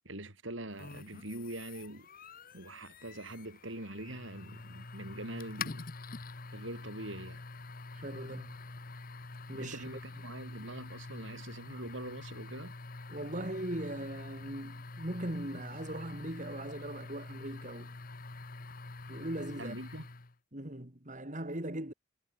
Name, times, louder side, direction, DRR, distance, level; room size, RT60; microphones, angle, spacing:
voice 1, 0.0-2.1 2.5-5.9 6.5-7.5 9.6-12.7 19.6-20.1, right 1 dB, 65° right, 5.8 m, -43 dB
sound 1, 0.8-20.3, left 3 dB, 45° left, 1.1 m, -46 dB
voice 2, 7.9-8.6 9.5-9.8 13.1-17.9 19.1-19.8 20.5-21.9, right 1 dB, 35° right, 2.9 m, -39 dB
head